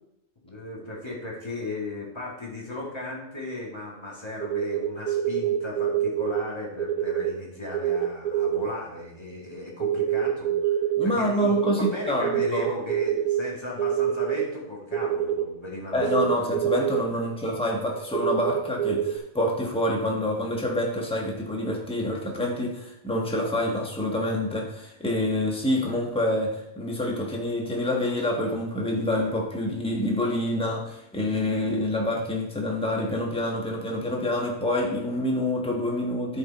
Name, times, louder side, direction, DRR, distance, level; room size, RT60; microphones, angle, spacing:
voice 1, 0.4-16.2, left 2 dB, 25° left, -3 dB, 1.9 m, -36 dB
sound 1, 4.4-6.4 6.8-7.3 7.7-8.7 9.8-11.1 11.4-13.4 13.7-14.4 14.9-15.4 16.0-17.0 17.6-19.2, right 10 dB, 40° right, 0.7 m, -25 dB
voice 2, 11.0-12.7 15.9-36.4, left 1 dB, 5° left, 0 dB, 1.1 m, -27 dB
10.5 x 4.5 x 4.1 m, 0.80 s
omnidirectional pair, 1.2 m